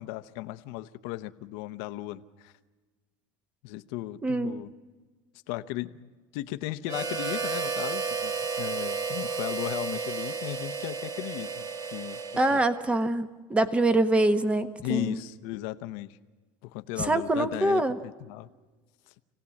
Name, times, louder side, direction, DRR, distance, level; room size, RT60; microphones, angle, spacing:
voice 1, 0.0-2.5 3.6-4.7 5.5-12.2 12.5-12.6 14.8-16.2 16.6-18.5, left 16 dB, 75° left, 10 dB, 0.9 m, -36 dB
voice 2, 4.2-4.6 12.4-15.2 17.0-18.0, right 2 dB, 10° right, 12 dB, 1.3 m, -25 dB
Harmonica, 6.9-12.9, right 5 dB, 35° right, 1.7 m, -32 dB
26.0 x 17.5 x 8.5 m, 1.3 s
cardioid pair, 150°, 10 cm